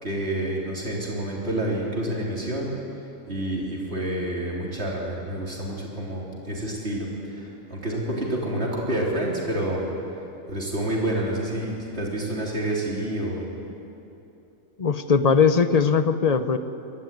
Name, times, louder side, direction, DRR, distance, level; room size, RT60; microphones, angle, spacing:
voice 1, 0.0-2.7 3.3-9.9 10.5-13.5, right 1 dB, 50° right, -3 dB, 4.1 m, -28 dB
voice 2, 14.8-16.6, left 5 dB, 40° left, 10 dB, 0.6 m, -20 dB
22.5 x 13.5 x 9.2 m, 2.9 s
omnidirectional pair, 1.4 m